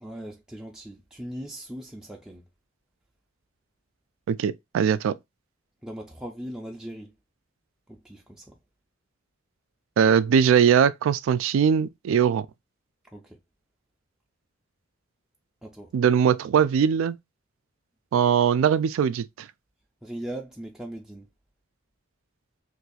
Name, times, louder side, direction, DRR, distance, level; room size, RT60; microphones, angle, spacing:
voice 1, 0.0-2.4 5.8-7.1 8.0-8.4 13.1-13.2 15.6-15.9 20.0-21.2, right 1 dB, 5° right, 0.4 m, -39 dB
voice 2, 4.3-5.2 10.0-12.5 15.9-17.2 18.1-19.3, right 7 dB, 75° right, 0.3 m, -21 dB
2.6 x 2.3 x 4.0 m
head